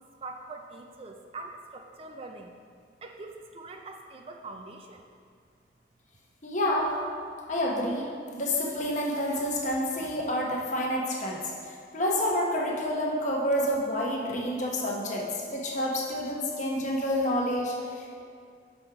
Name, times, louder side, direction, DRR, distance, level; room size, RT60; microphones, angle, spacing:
voice 1, 0.2-2.5 3.0-5.0, right 3 dB, 30° right, 3 dB, 0.4 m, -43 dB
voice 2, 6.4-6.9 7.5-18.2, left 1 dB, 40° left, -2 dB, 1.0 m, -29 dB
6.1 x 5.3 x 4.8 m, 2.2 s
head